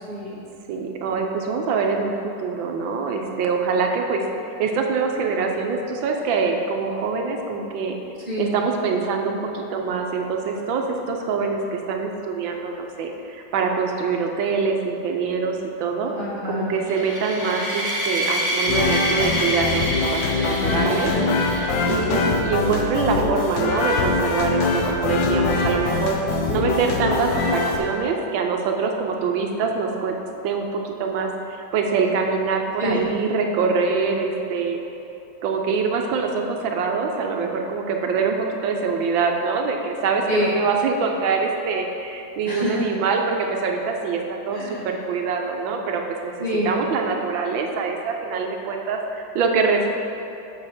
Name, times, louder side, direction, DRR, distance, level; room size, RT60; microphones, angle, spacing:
voice 1, 0.1-0.4 8.3-8.5 16.1-16.7 20.5-21.8 26.5-26.8 32.8-33.0 40.3-40.5 42.4-42.9 44.5-44.8 46.4-46.7, left 1 dB, 30° left, -6 dB, 1.2 m, -27 dB
voice 2, 0.7-8.0 8.4-16.1 16.4-21.1 21.9-30.2 30.4-34.8 35.4-46.3 46.6-49.9, right 5 dB, 85° right, 3 dB, 1.5 m, -24 dB
sound 1, 16.9-22.1, equal, 10° right, 1.1 m, -27 dB
sound 2, 18.7-27.8, left 3 dB, 75° left, 1.5 m, -23 dB
7.8 x 5.2 x 5.8 m, 2.9 s
omnidirectional pair, 2.1 m